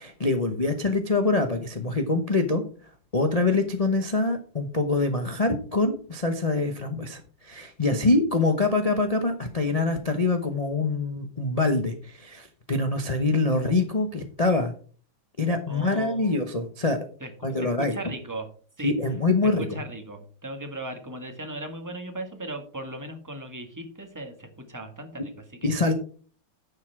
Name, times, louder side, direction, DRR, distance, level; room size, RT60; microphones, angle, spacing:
voice 1, 0.0-2.6 3.1-14.7 15.4-17.0 17.4-18.0 18.8-19.8 25.6-25.9, left 3 dB, 65° left, 5 dB, 0.3 m, -25 dB
voice 2, 15.7-16.4 17.2-18.5 18.8-18.9 19.6-25.7, right 1 dB, 10° right, 5 dB, 1.3 m, -37 dB
10.5 x 6.7 x 4.7 m, 0.42 s
omnidirectional pair, 2.4 m